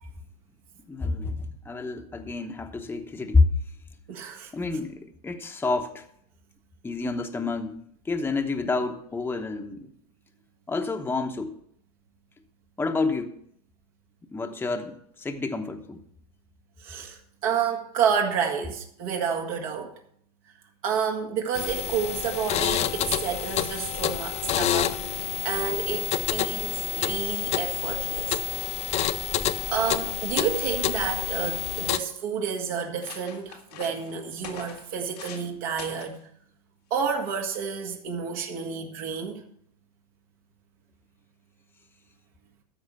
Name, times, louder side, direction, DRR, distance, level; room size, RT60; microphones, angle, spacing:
voice 1, 0.9-3.5 4.5-6.0 6.8-7.8 8.0-9.9 10.7-11.6 12.8-13.4 14.3-16.0, left 3 dB, 10° left, 1.0 m, -28 dB
voice 2, 4.1-4.5 16.8-19.9 20.8-28.4 29.7-36.2 36.9-39.4, right 7 dB, 65° right, 1.9 m, -30 dB
sound 1, 21.5-32.0, left 10 dB, 35° left, 0.6 m, -28 dB
sound 2, 31.3-31.8 32.4-32.5 32.8-35.5 35.8-36.2 37.0-37.2, left 8 dB, 85° left, 1.9 m, -44 dB
13.5 x 4.9 x 6.8 m
hypercardioid pair, 110°, 20 cm